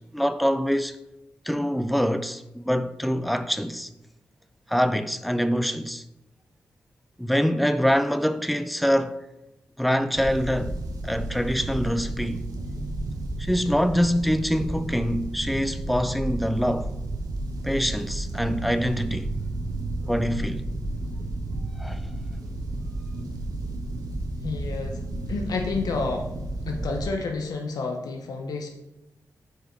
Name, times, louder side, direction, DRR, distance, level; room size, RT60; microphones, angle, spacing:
voice 1, 0.1-1.0 1.5-3.9 4.7-6.0 7.2-9.2 9.8-10.8 11.0-12.4 13.4-16.9 17.6-19.3 20.1-20.6 21.8-22.0, equal, ahead, 0.4 m, -25 dB
sound 1, 10.1-27.1, right 2 dB, 80° right, 0.9 m, -32 dB
voice 2, 24.4-26.3 26.6-28.7, left 3 dB, 80° left, 0.7 m, -30 dB
4.8 x 4.7 x 4.4 m
cardioid pair, 65°, 6 cm